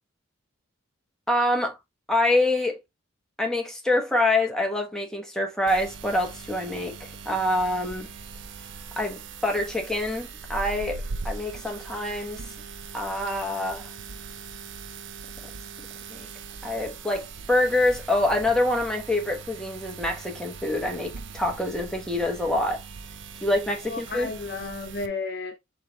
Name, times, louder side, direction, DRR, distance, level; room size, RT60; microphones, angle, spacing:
voice 1, 1.3-1.8 2.1-2.8 3.4-6.9 7.2-8.1 9.0-12.4 12.9-13.9 16.1-16.3 16.6-22.8 23.4-24.3, left 1 dB, 5° left, 1.0 m, -26 dB
sound 1, 5.7-25.1, right 4 dB, 60° right, 0.6 m, -40 dB
voice 2, 23.8-25.6, left 3 dB, 50° left, 0.8 m, -33 dB
4.6 x 3.3 x 3.3 m
head